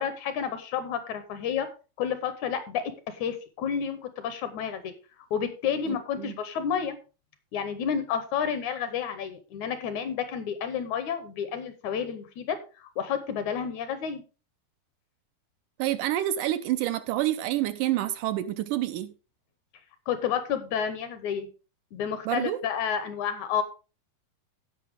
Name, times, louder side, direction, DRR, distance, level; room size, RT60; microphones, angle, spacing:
voice 1, 0.0-1.7 2.0-4.9 5.3-7.0 7.5-14.2 20.1-21.5 21.9-23.6, left 7 dB, 70° left, 2.0 m, -30 dB
voice 2, 5.9-6.3 15.8-19.1 22.3-22.6, right 14 dB, 80° right, 2.0 m, -28 dB
16.0 x 5.5 x 3.5 m
omnidirectional pair, 3.9 m